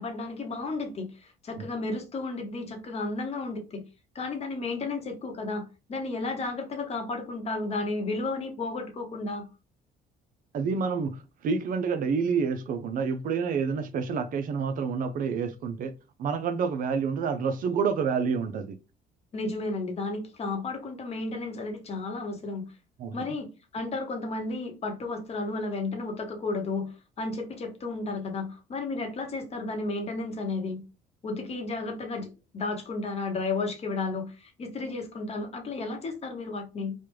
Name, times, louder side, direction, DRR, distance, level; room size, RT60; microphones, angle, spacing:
voice 1, 0.0-3.8 4.1-9.5 19.3-22.7 23.1-30.8 31.2-36.9, left 3 dB, 40° left, 0.9 m, -33 dB
voice 2, 10.5-15.9 16.2-18.7 23.0-23.2, right 5 dB, 55° right, 0.5 m, -28 dB
3.3 x 2.2 x 3.0 m
cardioid pair, 110°, 17 cm